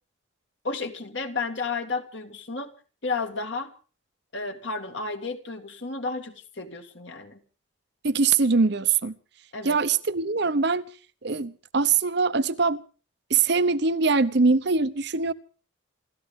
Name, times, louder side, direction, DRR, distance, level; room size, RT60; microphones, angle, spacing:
voice 1, 0.6-2.7 3.0-3.7 4.3-7.4 9.5-9.8, left 4 dB, 60° left, 2.2 m, -32 dB
voice 2, 8.0-9.2 9.6-10.9 11.2-12.8 13.3-15.3, right 4 dB, 55° right, 0.8 m, -22 dB
27.5 x 13.5 x 3.7 m
head